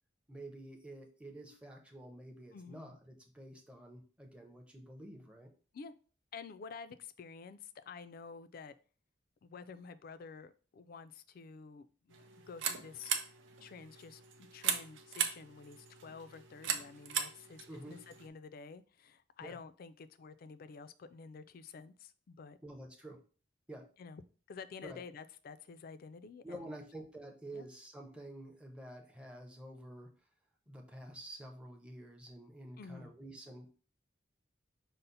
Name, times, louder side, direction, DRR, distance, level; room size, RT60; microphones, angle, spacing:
voice 1, 0.3-5.5 17.7-17.9 19.4-19.6 22.6-23.2 23.7-23.9 24.8-25.0 26.4-30.1 30.7-33.7, right 1 dB, 5° right, 0.6 m, -49 dB
voice 2, 2.5-3.0 5.7-5.9 6.3-8.7 9.4-13.2 13.6-22.6 24.0-24.2 24.5-26.8 27.5-27.7 32.8-33.1, left 5 dB, 50° left, 0.3 m, -50 dB
sound 1, 12.1-18.3, right 7 dB, 70° right, 0.6 m, -39 dB
5.6 x 2.0 x 3.8 m
head